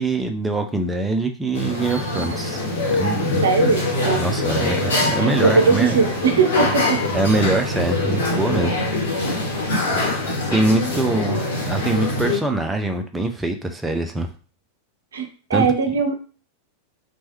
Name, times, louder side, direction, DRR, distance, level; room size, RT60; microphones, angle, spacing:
voice 1, 0.0-2.6 2.9-3.4 4.2-6.0 7.1-8.8 9.2-9.4 10.5-14.3 15.5-15.7, right 2 dB, 10° right, 5 dB, 0.4 m, -23 dB
sound 1, 1.5-12.4, left 2 dB, 60° left, 1.0 m, -23 dB
voice 2, 3.4-4.2 4.6-4.7 5.4-7.0 9.8-10.0 10.9-11.2 15.1-16.1, right 5 dB, 65° right, 6 dB, 0.5 m, -20 dB
3.0 x 2.2 x 3.0 m, 0.38 s
figure-of-eight pair, 90°, 0 cm